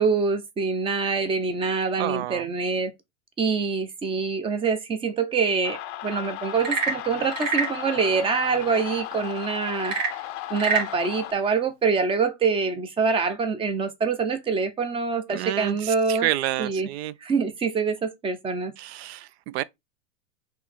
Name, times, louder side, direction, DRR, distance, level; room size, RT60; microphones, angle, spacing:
voice 1, 0.0-2.9 3.4-10.0 10.5-16.3 16.6-16.9 17.2-18.7, right 5 dB, 15° right, 0.6 m, -25 dB
voice 2, 2.0-2.4 15.3-17.1 18.8-19.6, right 14 dB, 55° right, 0.5 m, -29 dB
sound 1, 5.6-11.3, left 14 dB, 35° left, 0.5 m, -36 dB
Frog / Percussion / Wood, 6.5-7.8 9.8-10.9, right 5 dB, 85° right, 1.5 m, -26 dB
4.5 x 3.1 x 3.3 m
hypercardioid pair, 125°, 38 cm